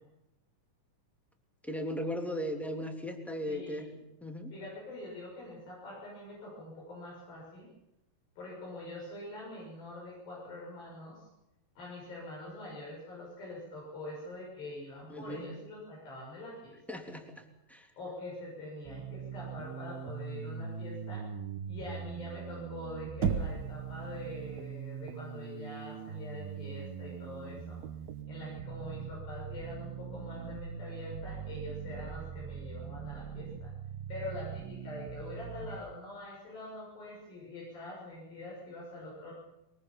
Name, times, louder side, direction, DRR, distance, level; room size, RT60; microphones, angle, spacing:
voice 1, 1.6-3.9 4.2-4.5 15.1-15.5 16.9-17.9, equal, ahead, 3 dB, 2.4 m, -37 dB
voice 2, 3.4-4.0 4.5-7.7 8.4-11.3 11.8-16.8 18.0-21.2 21.6-27.8 28.3-33.7 34.1-39.3, left 2 dB, 80° left, -4 dB, 8.3 m, -44 dB
sound 1, 18.9-35.8, right 7 dB, 85° right, 3.2 m, -42 dB
Knock, 23.2-23.9, right 6 dB, 65° right, 1.1 m, -30 dB
23.0 x 22.0 x 7.3 m, 0.90 s
omnidirectional pair, 4.1 m